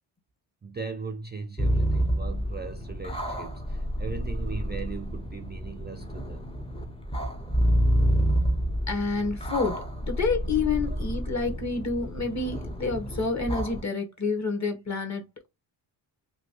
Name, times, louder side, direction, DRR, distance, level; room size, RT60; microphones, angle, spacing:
voice 1, 0.6-6.5, right 4 dB, 25° right, 0.4 m, -38 dB
sound 1, 1.6-13.8, equal, 10° left, 0.7 m, -28 dB
voice 2, 8.9-15.5, left 4 dB, 35° left, 1.2 m, -29 dB
3.0 x 2.3 x 2.9 m
cardioid pair, 60°, 49 cm